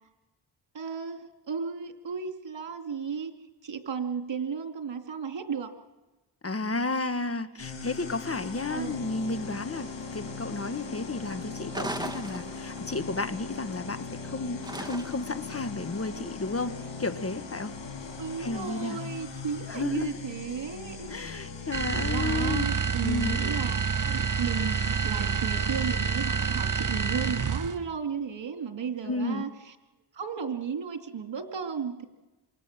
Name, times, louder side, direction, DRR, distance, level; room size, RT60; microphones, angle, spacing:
voice 1, 0.7-3.3 3.6-5.7 8.7-9.0 18.2-21.1 22.0-29.5 30.2-32.0, right 6 dB, 80° right, 4 dB, 2.6 m, -34 dB
voice 2, 6.4-17.7 18.4-19.0 19.7-20.1 21.1-22.7 23.0-23.4 29.0-29.5, left 3 dB, 30° left, 10 dB, 1.4 m, -32 dB
sound 1, 7.6-22.3, left 4 dB, 80° left, 6.0 m, -39 dB
sound 2, 11.7-12.9 14.6-15.4, right 1 dB, 10° right, 1.7 m, -37 dB
Striker Mid, 21.7-27.9, right 6 dB, 45° right, 1.1 m, -28 dB
27.0 x 24.5 x 7.4 m, 1.1 s
cardioid pair, 60°, 43 cm